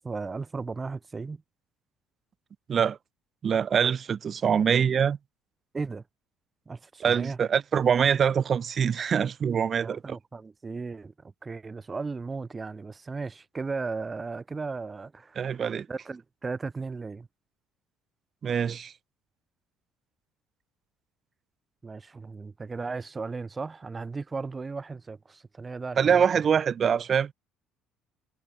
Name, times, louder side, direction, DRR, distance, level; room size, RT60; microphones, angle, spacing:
voice 1, 0.0-1.4 5.7-6.0 6.7-7.4 9.8-17.3 21.8-26.3, right 4 dB, 25° right, 1.2 m, -36 dB
voice 2, 3.4-5.2 7.0-10.0 15.4-15.9 18.4-18.9 26.0-27.3, right 7 dB, 40° right, 0.8 m, -24 dB
figure-of-eight pair, 55°, 0 cm